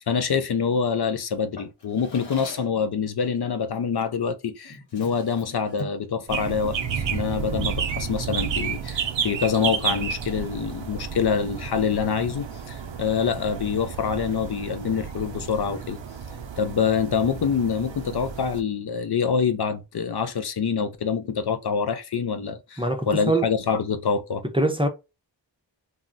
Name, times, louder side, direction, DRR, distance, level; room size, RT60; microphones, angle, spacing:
voice 1, 0.1-16.0 16.6-24.4, left 6 dB, 60° left, 0.5 m, -26 dB
Drawer open or close, 1.5-2.8 4.0-4.2 4.6-6.1, left 2 dB, 85° left, 1.0 m, -42 dB
sound 1, 6.3-18.6, right 7 dB, 90° right, 0.5 m, -31 dB
voice 2, 22.8-23.5 24.5-24.9, right 2 dB, 10° right, 0.5 m, -23 dB
2.3 x 2.1 x 3.8 m
wide cardioid pair, 55°, 44 cm